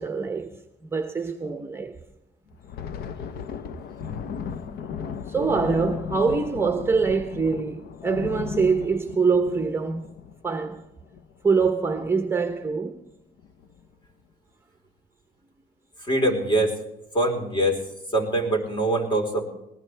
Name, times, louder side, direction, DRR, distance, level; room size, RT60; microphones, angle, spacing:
voice 1, 0.0-2.0 5.3-10.1 10.4-10.8 11.4-13.0, right 4 dB, 15° right, 0.9 m, -24 dB
Thunder, 2.5-11.6 11.9-12.1 12.5-12.8 13.4-13.9, left 7 dB, 70° left, 0.9 m, -36 dB
voice 2, 4.0-4.7 5.0-5.2 16.0-16.8 17.1-19.5, right 1 dB, 30° left, 4.1 m, -25 dB
21.0 x 19.0 x 3.4 m
cardioid pair, 115°, 16 cm